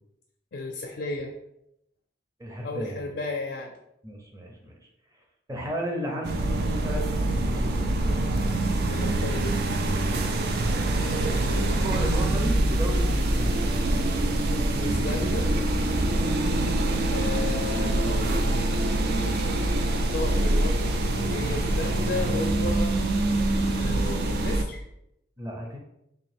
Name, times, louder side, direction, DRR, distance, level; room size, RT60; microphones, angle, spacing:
voice 1, 0.5-1.3 2.6-3.7 8.9-9.5 14.7-15.5 17.1-18.4 20.1-23.0 23.6-24.8, left 2 dB, 60° left, 1 dB, 0.4 m, -33 dB
voice 2, 2.4-3.1 4.0-4.7 5.5-7.1 7.4-8.2 10.7-10.9 11.5-14.1 23.8-24.0 25.4-25.8, equal, 20° right, 0 dB, 0.6 m, -34 dB
sound 1, 6.2-24.6, right 1 dB, 55° right, 0.4 m, -25 dB
3.6 x 2.5 x 3.3 m, 0.82 s
head